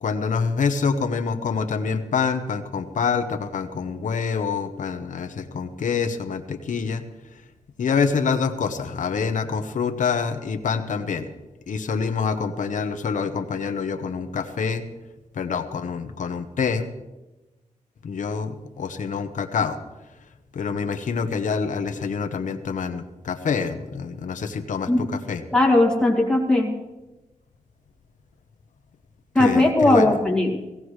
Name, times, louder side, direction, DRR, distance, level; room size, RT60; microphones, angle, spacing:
voice 1, 0.0-7.0 7.3-7.4 7.8-11.3 11.7-14.9 15.3-16.9 18.0-19.8 20.5-25.4 29.3-30.1, left 5 dB, 75° left, 8 dB, 1.0 m, -26 dB
voice 2, 25.5-26.7 29.3-30.6, left 2 dB, 5° left, -1 dB, 2.3 m, -18 dB
17.0 x 17.0 x 3.2 m, 1.1 s
wide cardioid pair, 130°, 13 cm